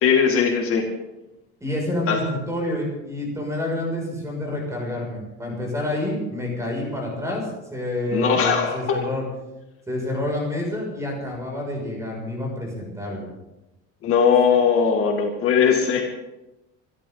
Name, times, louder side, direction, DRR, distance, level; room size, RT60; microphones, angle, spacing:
voice 1, 0.0-0.8 2.1-2.2 8.1-9.0 14.0-16.0, left 6 dB, 50° left, 1 dB, 2.4 m, -19 dB
voice 2, 1.6-9.2 9.9-13.3, left 1 dB, 10° right, 0 dB, 6.6 m, -28 dB
27.0 x 12.5 x 4.0 m, 0.96 s
cardioid pair, 170°, 29 cm